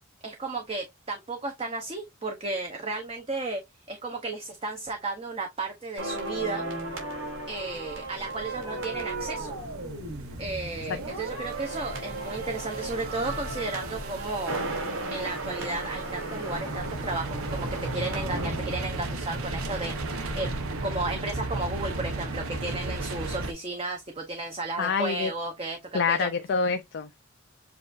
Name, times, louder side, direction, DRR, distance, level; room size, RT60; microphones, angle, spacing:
voice 1, 0.2-3.6 3.9-6.7 7.5-9.6 10.4-14.6 15.0-19.9 20.4-20.5 20.8-26.3, right 3 dB, 25° right, 0.7 m, -33 dB
sound 1, 6.0-20.1 20.4-20.6, right 2 dB, 65° right, 2.8 m, -36 dB
sound 2, 7.0-23.5, right 2 dB, 80° right, 1.0 m, -36 dB
voice 2, 24.8-25.3 25.9-27.2, left 5 dB, 50° left, 0.4 m, -26 dB
7.3 x 2.5 x 2.5 m
head